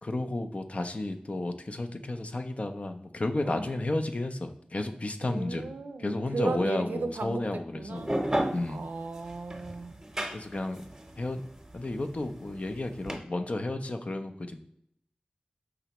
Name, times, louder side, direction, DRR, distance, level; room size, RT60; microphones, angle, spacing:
voice 1, 0.0-5.7 6.0-8.1 8.5-8.8 10.3-10.9 11.2-11.4 11.7-14.6, left 2 dB, 45° left, 6 dB, 0.5 m, -32 dB
voice 2, 5.2-8.1 8.7-9.9, right 3 dB, 85° right, 7 dB, 0.4 m, -35 dB
sound 1, 7.9-13.2, right 1 dB, 15° right, 0.8 m, -33 dB
4.9 x 3.3 x 2.9 m, 0.73 s
cardioid pair, 45°, 3 cm